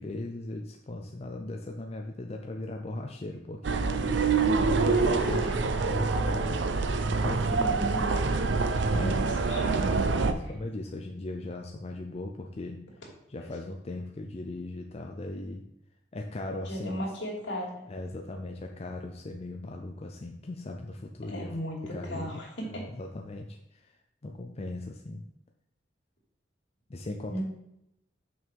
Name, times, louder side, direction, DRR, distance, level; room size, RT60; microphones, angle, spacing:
voice 1, 0.0-6.6 7.0-8.0 8.8-9.3 9.7-10.0 10.2-12.8 13.3-15.6 16.1-17.0 17.9-21.5 21.9-22.4 22.7-23.9 24.2-25.2 26.9-27.4, left 2 dB, 35° left, 2 dB, 0.5 m, -38 dB
sound 1, 3.6-10.3, right 4 dB, 85° right, 0.6 m, -26 dB
voice 2, 4.6-5.3 7.6-8.2 8.9-9.8 16.6-17.8 21.3-22.8 27.3-27.4, right 1 dB, 75° left, -3 dB, 2.6 m, -36 dB
6.2 x 5.4 x 4.6 m, 0.81 s
head